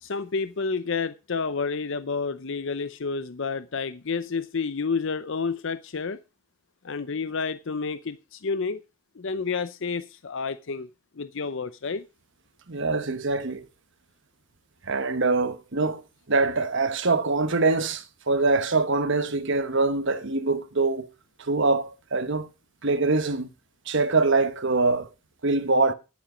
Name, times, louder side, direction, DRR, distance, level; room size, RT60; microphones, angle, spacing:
voice 1, 0.0-6.2 6.8-8.8 9.2-10.9 11.2-12.0, left 4 dB, 60° left, 0.6 m, -30 dB
voice 2, 12.7-13.6 14.9-16.0 16.3-21.1 21.4-22.5 22.8-23.5 23.9-25.1 25.4-25.9, right 3 dB, 55° right, 1.2 m, -24 dB
10.5 x 9.3 x 5.1 m
head